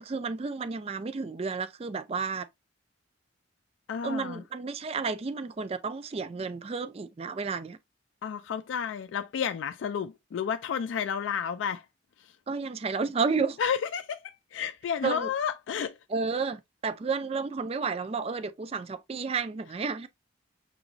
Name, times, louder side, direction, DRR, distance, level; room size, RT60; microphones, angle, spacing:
voice 1, 0.0-2.5 4.0-7.8 12.5-13.6 15.0-15.3 16.1-20.1, right 4 dB, 30° right, 0.3 m, -31 dB
voice 2, 3.9-4.4 8.2-11.9 12.2-12.4 13.6-16.0, left 7 dB, 75° left, 0.3 m, -31 dB
6.2 x 2.9 x 2.5 m
head